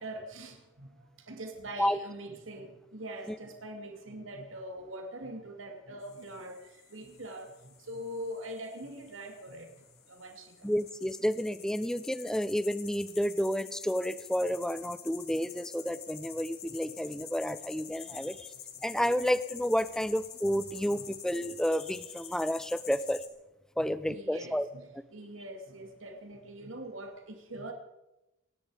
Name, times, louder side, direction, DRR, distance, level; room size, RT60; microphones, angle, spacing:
voice 1, 0.0-10.7 14.4-14.5 15.3-15.4 17.2-17.3 18.1-18.3 23.8-27.7, right 1 dB, 90° right, 4 dB, 2.5 m, -43 dB
sound 1, 6.0-23.3, left 9 dB, 55° left, 2.5 m, -48 dB
voice 2, 10.6-18.5 18.8-23.2 23.8-24.7, equal, 5° left, 14 dB, 0.7 m, -30 dB
27.5 x 10.5 x 5.0 m, 0.93 s
head